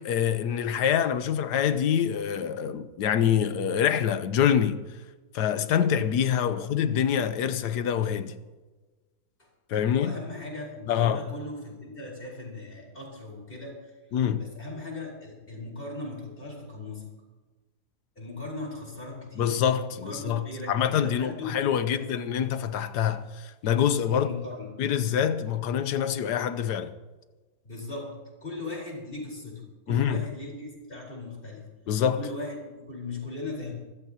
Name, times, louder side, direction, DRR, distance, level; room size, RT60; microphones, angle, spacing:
voice 1, 0.0-4.8 5.3-8.3 9.7-10.2 10.9-11.2 14.1-14.5 19.4-24.3 24.8-26.9 29.9-30.3 31.9-32.2, left 9 dB, 85° left, 1.4 m, -25 dB
voice 2, 9.9-13.9 14.3-17.0 18.2-19.5 19.9-22.0 24.1-24.8 27.6-31.6 32.1-33.7, left 2 dB, 30° left, 4.6 m, -38 dB
24.0 x 14.0 x 2.9 m
omnidirectional pair, 1.7 m